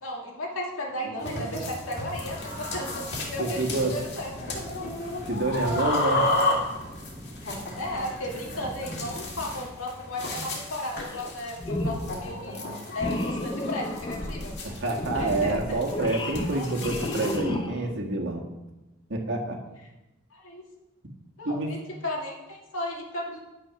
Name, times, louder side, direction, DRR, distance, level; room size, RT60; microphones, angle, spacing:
voice 1, 0.0-4.6 7.4-12.7 12.9-14.5 15.1-15.8 16.5-16.6 20.3-20.6 21.4-23.4, left 1 dB, 75° left, -2 dB, 2.3 m, -35 dB
voice 2, 1.0-1.4 3.4-4.0 5.3-6.3 8.5-8.7 14.6-18.4 19.1-19.6 21.4-21.7, right 2 dB, 60° right, 1 dB, 1.8 m, -28 dB
sound 1, 1.2-17.4, left 2 dB, 55° left, 2.6 m, -33 dB
sound 2, 2.0-9.6, equal, 10° right, 1.2 m, -44 dB
sound 3, 11.0-11.3 11.6-12.2 13.0-18.0, left 1 dB, 25° left, 0.8 m, -32 dB
10.5 x 6.8 x 5.9 m, 1.0 s
head